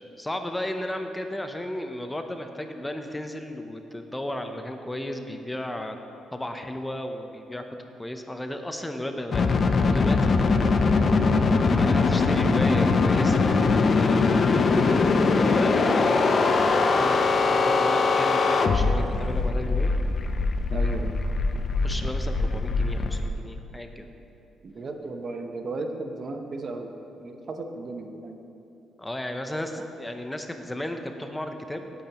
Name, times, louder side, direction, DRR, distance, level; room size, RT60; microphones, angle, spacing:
voice 1, 0.0-6.0 6.3-7.6 8.0-10.4 11.7-13.5 14.0-14.7 15.2-19.9 21.8-24.1 29.0-31.9, left 1 dB, 10° left, 6 dB, 0.7 m, -34 dB
sound 1, 9.3-23.3, left 4 dB, 45° left, 0.7 m, -22 dB
voice 2, 20.7-21.1 24.6-26.9 27.2-28.4, right 3 dB, 45° right, 5 dB, 0.8 m, -35 dB
16.0 x 8.8 x 3.0 m, 2.9 s
cardioid pair, 90°, 0 cm